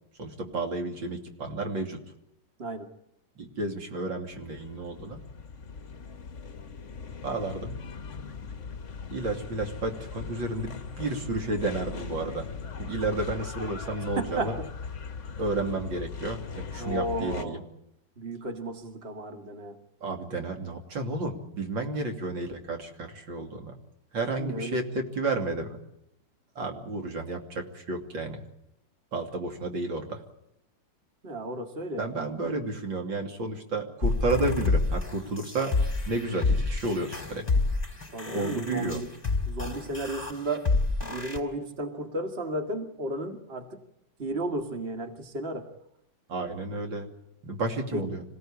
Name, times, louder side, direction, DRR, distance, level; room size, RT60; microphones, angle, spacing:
voice 1, 0.2-2.0 3.4-5.2 7.2-7.7 9.1-12.5 12.8-14.6 15.4-17.6 20.0-23.7 24.1-25.8 26.5-28.4 29.1-30.2 32.0-35.7 36.1-37.5 38.2-39.0 46.3-47.1 47.4-48.2, right 2 dB, 80° right, 3 dB, 3.4 m, -31 dB
sound 1, 4.3-17.4, left 5 dB, 45° left, 1.4 m, -40 dB
voice 2, 14.2-14.7 16.8-17.6 18.2-19.8 24.4-24.8 31.2-32.0 38.1-39.1 39.5-40.7 41.0-43.8 44.2-45.7 47.9-48.0, right 1 dB, 30° right, 5 dB, 2.1 m, -33 dB
sound 2, 34.0-41.4, left 3 dB, 20° left, 4.4 m, -29 dB
27.0 x 17.0 x 8.6 m, 0.82 s
omnidirectional pair, 2.0 m